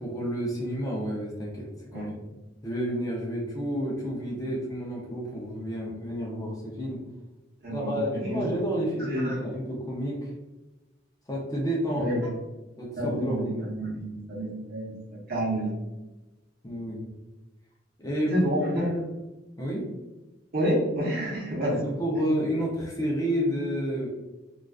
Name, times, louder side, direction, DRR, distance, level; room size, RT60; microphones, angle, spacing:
voice 1, 0.0-2.1 2.6-7.0 7.7-10.3 11.3-12.2 12.8-13.7 16.6-17.1 18.0-18.5 18.8-18.9 19.6-19.9 21.7-24.1, equal, 20° left, -4 dB, 0.5 m, -30 dB
voice 2, 7.6-8.0 8.3-8.4 9.1-9.4 11.9-12.2 13.0-14.9 15.3-15.7 18.3-18.9 20.5-21.8, equal, 55° right, -5 dB, 0.9 m, -28 dB
2.4 x 2.4 x 2.3 m, 1.1 s
head